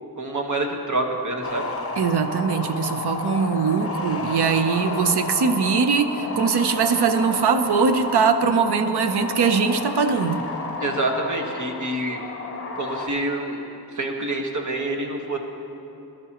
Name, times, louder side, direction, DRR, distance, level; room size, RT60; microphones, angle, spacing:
voice 1, 0.2-1.7 10.8-12.2 12.8-13.6 13.9-15.4, right 2 dB, 50° right, 2 dB, 1.4 m, -26 dB
sound 1, 1.4-13.1, left 3 dB, 35° left, 0.9 m, -32 dB
voice 2, 2.0-10.5, right 5 dB, 80° right, 9 dB, 0.8 m, -21 dB
20.5 x 12.0 x 3.0 m, 2.8 s
wide cardioid pair, 125°, 39 cm